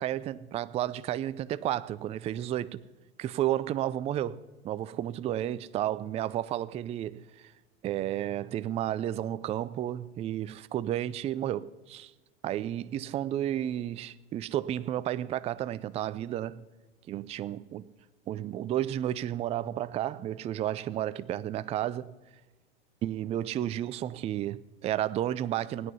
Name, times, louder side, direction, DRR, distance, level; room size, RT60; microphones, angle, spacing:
voice 1, 0.0-2.8 3.2-7.5 7.8-12.1 12.4-16.6 17.1-17.8 18.3-22.1 23.0-25.9, right 12 dB, 20° right, 0.4 m, -32 dB
16.5 x 9.6 x 5.5 m
hypercardioid pair, 105°, 31 cm